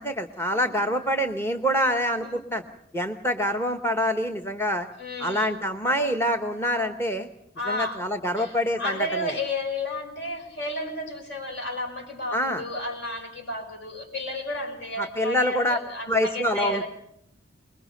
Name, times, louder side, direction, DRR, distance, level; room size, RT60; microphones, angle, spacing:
voice 1, 0.0-2.6 2.9-4.9 5.2-7.3 7.7-9.4 12.3-12.6 15.0-15.8 16.0-16.8, equal, 15° left, 7 dB, 1.0 m, -26 dB
voice 2, 5.0-5.6 7.6-8.1 8.4-16.9, left 1 dB, 65° left, 4 dB, 6.0 m, -32 dB
25.0 x 21.5 x 6.6 m, 0.73 s
head